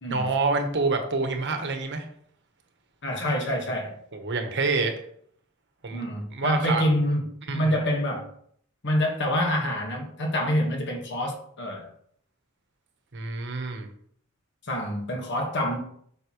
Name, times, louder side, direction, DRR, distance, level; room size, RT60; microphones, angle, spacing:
voice 1, 0.1-2.1 4.1-4.9 5.8-6.8 7.5-7.7 13.1-13.9, right 3 dB, 55° right, 1.2 m, -27 dB
voice 2, 3.0-3.9 5.9-7.2 7.5-8.3 8.8-11.9 14.6-15.8, equal, 60° left, 1.6 m, -26 dB
8.2 x 6.0 x 3.1 m
head